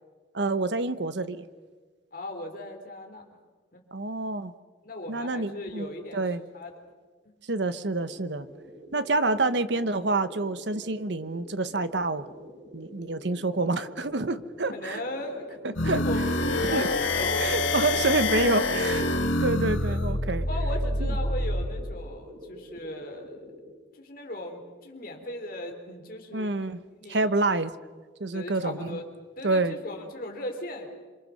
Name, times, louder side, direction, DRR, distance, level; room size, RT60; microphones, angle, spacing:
voice 1, 0.3-1.4 3.9-4.5 5.1-6.4 7.5-8.5 8.9-12.3 12.7-15.0 15.6-16.0 16.6-16.9 17.4-19.1 19.4-20.5 21.0-21.2 26.3-26.8 27.1-27.7 28.2-29.0 29.4-29.8, right 2 dB, 65° right, 12 dB, 1.1 m, -27 dB
voice 2, 2.1-3.2 3.7-3.8 4.8-6.2 6.5-6.7 7.2-7.3 14.7-18.2 19.2-19.3 19.8-20.2 20.5-23.5 24.0-26.5 27.0-27.3 28.3-29.1 29.4-30.9, left 1 dB, 45° left, 3 dB, 4.0 m, -37 dB
sound 1, 7.9-23.7, equal, 45° right, 7.3 m, -47 dB
sound 2, 15.8-21.7, left 2 dB, 85° left, 2.2 m, -26 dB
27.5 x 24.5 x 6.6 m, 1.4 s
head